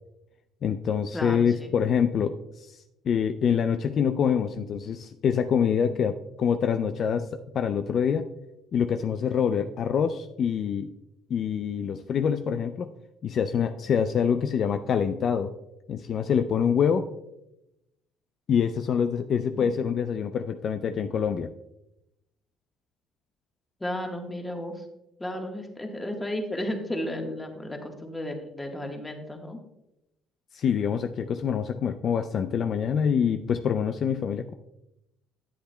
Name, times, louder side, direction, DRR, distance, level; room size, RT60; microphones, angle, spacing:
voice 1, 0.6-7.3 7.5-8.3 8.7-10.9 11.3-12.9 13.2-15.5 15.9-17.1 18.5-21.5 30.5-34.5, left 7 dB, 55° left, 8 dB, 0.4 m, -25 dB
voice 2, 1.1-1.7 19.5-19.6 23.8-24.8 25.2-29.6, left 1 dB, 15° left, 3 dB, 1.3 m, -33 dB
10.0 x 8.1 x 2.2 m, 0.88 s
cardioid pair, 100°, 0 cm